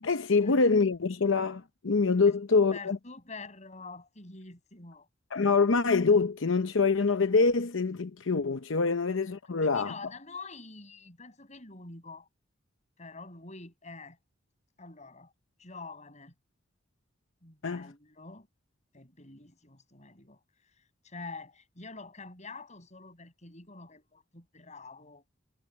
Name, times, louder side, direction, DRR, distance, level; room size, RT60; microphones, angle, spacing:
voice 1, 0.0-3.0 5.3-9.9 17.6-17.9, left 4 dB, 90° left, 0.8 m, -25 dB
voice 2, 2.7-5.1 9.6-12.3 13.0-14.2 14.8-15.3 15.6-16.3 17.4-18.5 18.9-20.4 21.0-25.2, left 3 dB, 40° left, 7.7 m, -46 dB
head